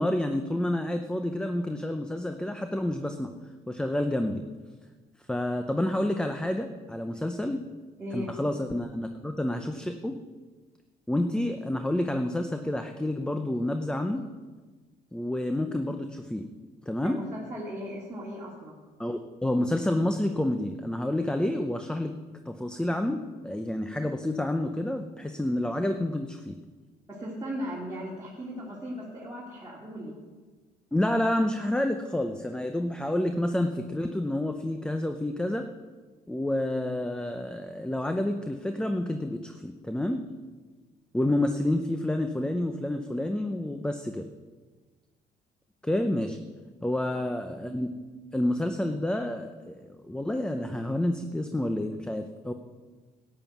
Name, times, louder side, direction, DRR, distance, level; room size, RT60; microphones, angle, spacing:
voice 1, 0.0-3.3 3.7-4.4 5.3-7.6 8.1-10.2 11.1-14.2 15.1-16.5 16.9-17.2 19.0-22.1 22.5-26.6 30.9-35.7 36.3-40.2 41.1-44.3 45.8-46.4 46.8-47.9 48.3-52.5, left 1 dB, 5° left, 6 dB, 0.7 m, -29 dB
voice 2, 8.0-8.3 17.0-18.8 27.1-30.2, equal, 15° right, -7 dB, 2.5 m, -37 dB
12.5 x 9.2 x 6.0 m, 1.3 s
cardioid pair, 110°, 17 cm